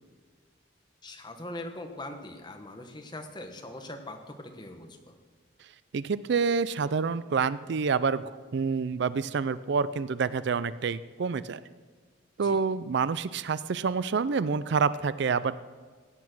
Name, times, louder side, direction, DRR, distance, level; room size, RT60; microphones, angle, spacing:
voice 1, 1.0-5.2 12.4-12.6, left 1 dB, 20° left, 5 dB, 1.3 m, -41 dB
voice 2, 5.9-11.6 12.4-15.6, right 5 dB, 55° right, 16 dB, 0.4 m, -28 dB
16.5 x 9.3 x 6.2 m, 1.5 s
head